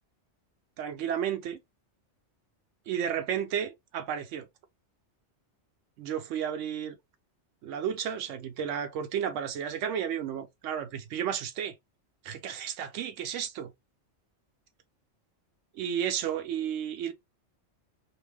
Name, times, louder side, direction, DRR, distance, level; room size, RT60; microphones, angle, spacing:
voice 1, 0.8-1.6 2.9-4.5 6.0-7.0 7.6-11.7 12.2-13.7 15.7-17.1, right 9 dB, 90° right, 0.9 m, -32 dB
2.5 x 2.4 x 3.3 m
omnidirectional pair, 1.2 m